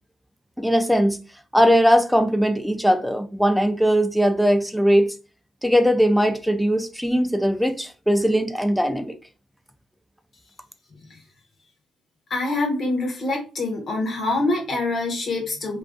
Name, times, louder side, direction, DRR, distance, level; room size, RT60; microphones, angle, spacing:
voice 1, 0.6-1.2 1.5-5.1 5.6-9.1, equal, ahead, 0.3 m, -19 dB
voice 2, 12.3-15.8, left 2 dB, 50° left, 0.7 m, -25 dB
2.3 x 2.3 x 2.3 m
cardioid pair, 90°, 0 cm